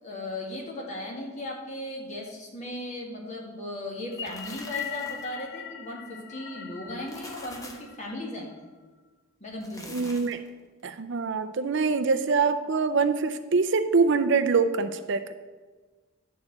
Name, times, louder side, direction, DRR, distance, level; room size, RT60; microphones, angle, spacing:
voice 1, 0.0-8.6 9.4-10.1, left 1 dB, 35° left, -1 dB, 2.0 m, -37 dB
sound 1, 3.9-5.4 6.9-8.0 9.5-10.5, left 1 dB, 15° left, 1.0 m, -45 dB
sound 2, 4.0-8.5, left 9 dB, 50° left, 0.6 m, -40 dB
voice 2, 9.9-10.4 10.8-15.3, right 4 dB, 55° right, 9 dB, 0.5 m, -24 dB
12.0 x 4.3 x 7.8 m, 1.3 s
head